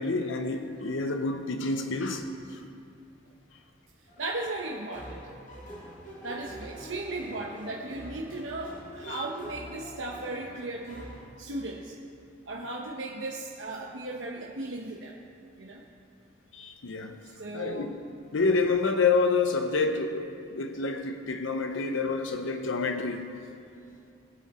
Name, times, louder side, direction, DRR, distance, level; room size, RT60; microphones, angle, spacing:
voice 1, 0.0-2.3 9.1-9.2 16.5-17.2 17.5-18.0 18.3-23.3, left 4 dB, 85° left, 0.7 m, -28 dB
voice 2, 4.0-5.3 6.2-12.0 12.5-15.2 15.6-15.8 17.4-17.9, right 2 dB, 75° right, 0.9 m, -36 dB
sound 1, 4.1-11.2, equal, 40° left, 2.3 m, -45 dB
21.5 x 7.4 x 4.2 m
head